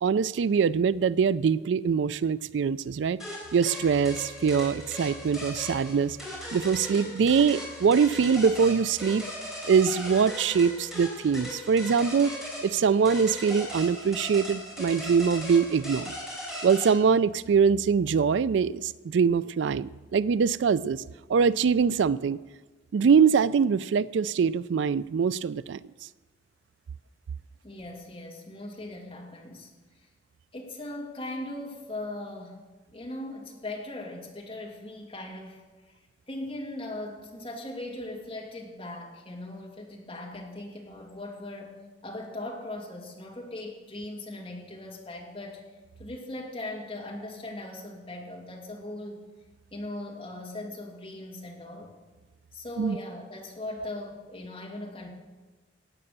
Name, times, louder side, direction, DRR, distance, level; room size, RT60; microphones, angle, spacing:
voice 1, 0.0-3.2 3.5-6.2 6.5-9.3 9.7-12.4 12.6-16.1 16.6-21.0 21.3-22.4 22.9-25.8 52.8-53.0, right 6 dB, 80° right, 18 dB, 0.4 m, -23 dB
sound 1, 3.2-16.9, equal, ahead, 4.1 m, -38 dB
voice 2, 27.6-29.7 30.5-32.6 32.9-36.0 36.3-45.6 46.0-49.2 49.7-51.9 52.5-55.1, left 1 dB, 30° left, -1 dB, 2.6 m, -39 dB
16.5 x 8.7 x 6.7 m, 1.2 s
head